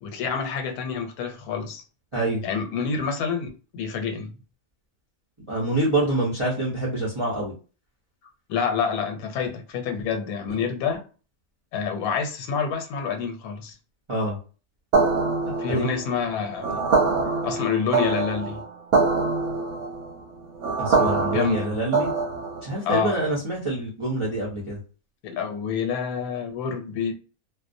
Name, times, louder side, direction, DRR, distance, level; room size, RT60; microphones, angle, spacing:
voice 1, 0.0-1.8 2.4-4.3 8.5-11.0 11.7-13.8 15.6-16.8 17.4-18.6 21.3-21.7 22.8-23.2 25.2-27.1, left 6 dB, 90° left, 1.1 m, -27 dB
voice 2, 5.5-7.5 14.1-14.4 15.7-15.9 20.8-22.1 22.6-24.8, right 2 dB, 50° right, 0.3 m, -26 dB
sound 1, 14.9-22.7, right 4 dB, 65° right, 0.8 m, -24 dB
2.4 x 2.0 x 2.5 m
omnidirectional pair, 1.5 m